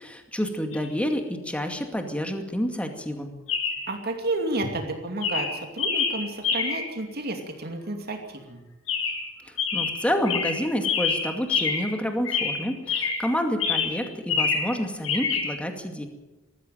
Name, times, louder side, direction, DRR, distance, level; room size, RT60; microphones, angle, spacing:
voice 1, 0.0-3.3 9.5-16.1, equal, 5° left, 4 dB, 2.3 m, -29 dB
Chirp tweet, 0.7-0.9 3.5-3.9 4.6-4.9 5.2-6.9 8.9-9.3 9.6-12.0 12.2-13.3 13.6-14.7 15.0-15.5, left 5 dB, 85° left, 7.1 m, -26 dB
voice 2, 3.9-8.6, right 2 dB, 50° right, 3 dB, 2.6 m, -31 dB
20.5 x 14.5 x 9.2 m, 1.1 s
head